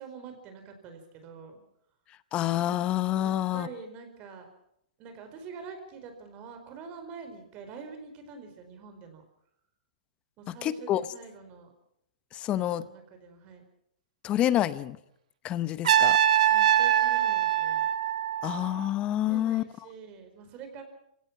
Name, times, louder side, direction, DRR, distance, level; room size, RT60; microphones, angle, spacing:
voice 1, 0.0-1.6 3.2-4.5 5.0-9.2 10.4-11.7 12.6-13.6 16.5-17.9 19.2-20.8, right 5 dB, 35° right, 7 dB, 4.7 m, -45 dB
voice 2, 2.3-3.7 10.5-11.0 12.3-12.8 14.2-15.0 15.4-16.2 18.4-19.6, left 12 dB, 25° left, 16 dB, 0.9 m, -28 dB
Trumpet, 15.8-18.8, right 11 dB, 70° right, 1.6 m, -23 dB
27.0 x 17.0 x 6.0 m, 0.75 s
hypercardioid pair, 140°, 4 cm